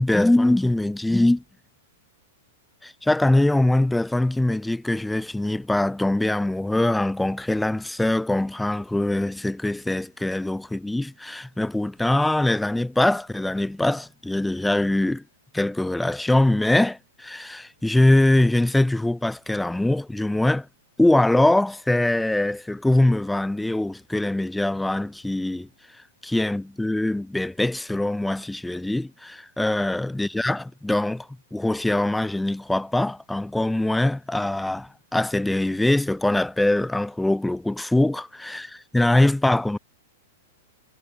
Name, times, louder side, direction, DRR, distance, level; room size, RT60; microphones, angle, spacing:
voice 1, 0.0-1.4 2.8-15.2 15.5-20.7 21.0-25.7 26.2-39.8, left 1 dB, 5° left, 1.2 m, -22 dB
figure-of-eight pair, 105°, 0 cm